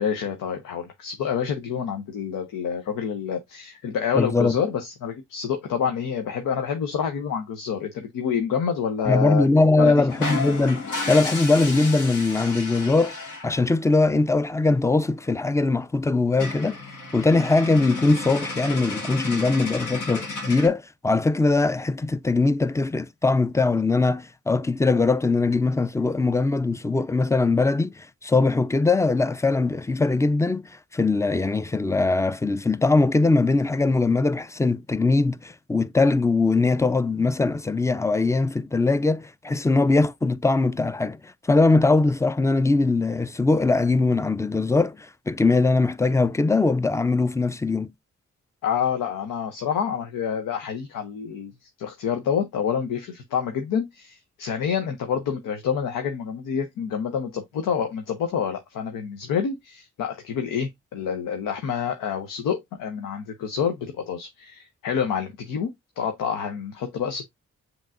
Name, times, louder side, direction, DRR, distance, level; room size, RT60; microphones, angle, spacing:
voice 1, 0.0-9.5 9.8-10.1 48.6-51.5 51.8-65.7 66.0-67.2, left 7 dB, 90° left, 0.7 m, -27 dB
voice 2, 4.1-4.5 9.1-13.1 13.4-16.8 17.1-47.9, left 3 dB, 10° left, 0.4 m, -21 dB
sound 1, 10.1-13.7 15.3-15.4 15.6-15.8 16.1-16.2 16.3-20.7, left 3 dB, 70° left, 1.5 m, -32 dB
7.2 x 3.0 x 2.4 m
supercardioid pair, 40°, 32 cm